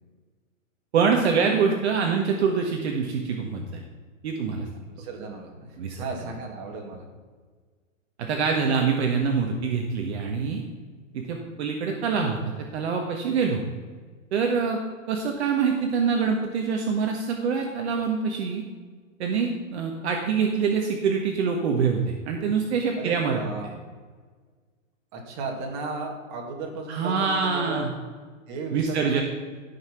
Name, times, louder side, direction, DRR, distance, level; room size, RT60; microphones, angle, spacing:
voice 1, 0.9-3.8 4.2-4.6 5.8-6.0 8.2-10.6 11.1-12.4 12.7-13.6 14.3-14.8 15.1-18.6 19.2-23.4 26.9-27.9 28.7-29.2, right 5 dB, 55° right, 2 dB, 1.5 m, -25 dB
voice 2, 4.8-7.1 23.0-23.7 25.1-27.9 28.5-29.2, right 3 dB, 35° right, 1 dB, 2.5 m, -35 dB
13.5 x 5.9 x 5.8 m, 1.5 s
hypercardioid pair, 150°, 40 cm